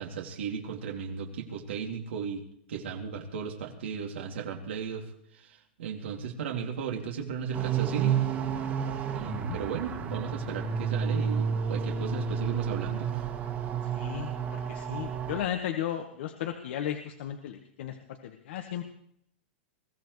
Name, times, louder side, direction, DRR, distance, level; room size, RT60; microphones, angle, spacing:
voice 1, 0.0-8.2 9.1-13.2, right 6 dB, 80° right, 0 dB, 2.6 m, -36 dB
sound 1, 7.5-15.4, right 7 dB, 30° right, 2.0 m, -31 dB
voice 2, 13.8-18.8, left 10 dB, 65° left, 5 dB, 1.4 m, -35 dB
22.0 x 15.0 x 3.2 m, 0.71 s
hypercardioid pair, 135°, 6 cm